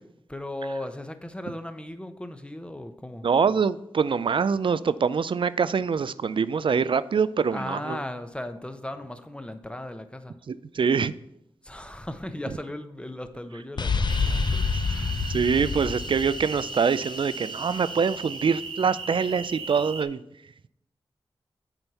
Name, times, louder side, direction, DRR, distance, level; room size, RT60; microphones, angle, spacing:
voice 1, 0.3-3.3 7.5-10.3 11.6-15.4, left 1 dB, 10° left, 0.9 m, -37 dB
voice 2, 3.2-8.0 10.5-11.1 15.3-20.2, right 6 dB, 55° right, 0.4 m, -24 dB
sound 1, 13.8-17.5, left 4 dB, 50° left, 0.7 m, -28 dB
sound 2, 14.1-20.0, right 4 dB, 75° right, 1.0 m, -37 dB
7.7 x 4.5 x 5.5 m
cardioid pair, 40°, 10 cm